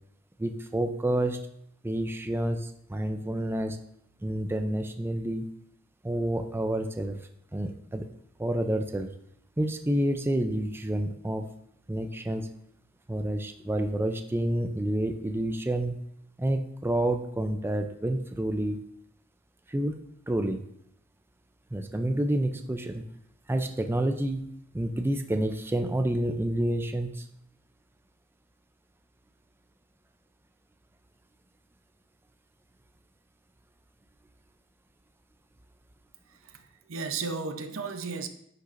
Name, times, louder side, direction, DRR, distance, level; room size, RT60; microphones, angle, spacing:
voice 1, 0.4-1.4 1.8-3.8 4.2-5.5 6.0-7.2 7.5-8.1 8.4-9.1 9.6-11.5 11.9-12.5 13.1-16.0 16.4-18.8 19.7-20.0 20.3-20.7 21.7-23.1 23.5-24.5 24.7-27.3, right 1 dB, 10° right, 0.4 m, -29 dB
voice 2, 36.3-38.3, right 4 dB, 85° right, 0.7 m, -35 dB
9.8 x 6.6 x 2.6 m
head